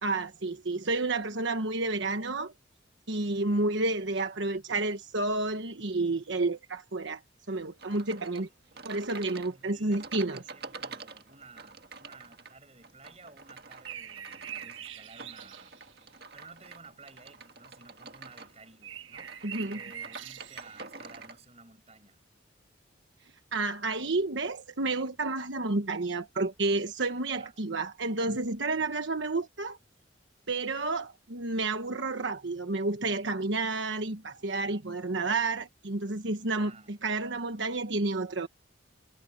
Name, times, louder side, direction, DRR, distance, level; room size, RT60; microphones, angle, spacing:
voice 1, 0.0-2.5 3.1-7.2 7.5-8.5 8.8-10.4 19.4-19.8 23.5-29.8 30.5-38.5, right 3 dB, 70° right, 1.2 m, -30 dB
sound 1, 7.8-21.4, right 4 dB, 55° right, 1.8 m, -47 dB
voice 2, 8.0-8.8 9.3-15.8 16.3-19.4 19.7-22.2 27.4-27.5 28.8-28.9 36.5-37.0, right 3 dB, 30° right, 7.0 m, -55 dB
sound 2, 13.9-16.0 18.8-20.8, right 9 dB, 85° right, 1.6 m, -43 dB
head